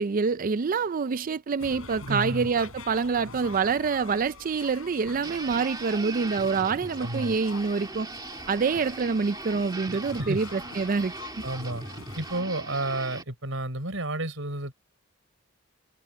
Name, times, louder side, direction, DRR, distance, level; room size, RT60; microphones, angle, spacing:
voice 1, 0.0-8.1 8.5-11.1, right 5 dB, 40° right, 0.4 m, -26 dB
sound 1, 1.6-12.4, left 3 dB, 80° left, 5.8 m, -46 dB
voice 2, 2.1-2.5 7.0-7.4 10.2-10.4 11.4-11.8 12.1-14.7, right 1 dB, 70° right, 6.4 m, -31 dB
sound 2, 5.2-13.2, right 3 dB, 20° right, 1.9 m, -40 dB
head